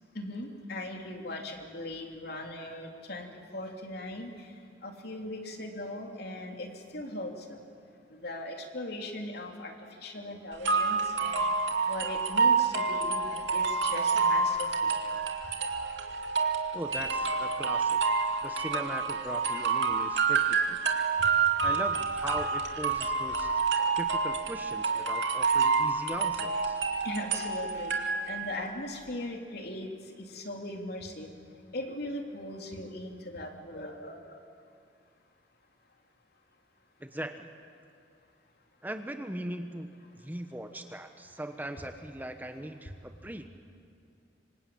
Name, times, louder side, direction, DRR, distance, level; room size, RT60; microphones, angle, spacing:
voice 1, 0.1-3.3 3.5-4.5 4.8-7.6 8.1-9.7 10.0-11.5 11.9-14.9 21.2-21.3 21.6-21.7 27.0-27.9 28.3-29.9 30.2-31.3 31.7-34.4, left 1 dB, 55° left, 2 dB, 3.3 m, -39 dB
sound 1, 10.6-28.6, right 4 dB, 65° right, 2.5 m, -28 dB
voice 2, 16.7-18.0 18.4-20.8 21.6-23.6 24.0-26.8 37.0-37.5 38.8-43.5, right 1 dB, 10° right, 7 dB, 1.1 m, -39 dB
26.5 x 25.5 x 8.7 m, 2.3 s
head